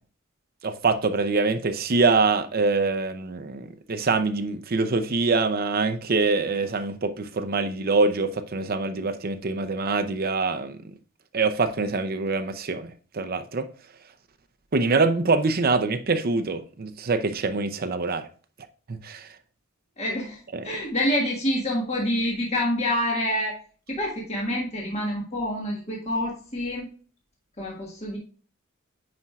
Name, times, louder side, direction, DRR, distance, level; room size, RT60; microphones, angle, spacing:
voice 1, 0.6-10.8 11.3-13.7 14.7-18.3 18.9-19.3 20.5-20.7, right 3 dB, 45° right, 0.6 m, -24 dB
voice 2, 20.0-23.5 23.9-26.9 27.6-28.2, left 1 dB, 30° left, 1.5 m, -27 dB
9.7 x 4.4 x 2.4 m
head